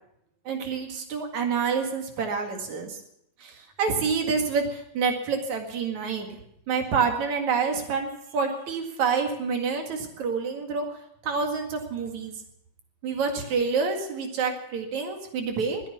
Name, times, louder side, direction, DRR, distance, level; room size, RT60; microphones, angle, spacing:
voice 1, 0.5-3.0 3.4-6.3 6.7-11.0 11.2-12.3 13.0-15.8, right 5 dB, 70° right, 4 dB, 3.3 m, -27 dB
21.0 x 9.0 x 6.9 m, 0.75 s
omnidirectional pair, 3.4 m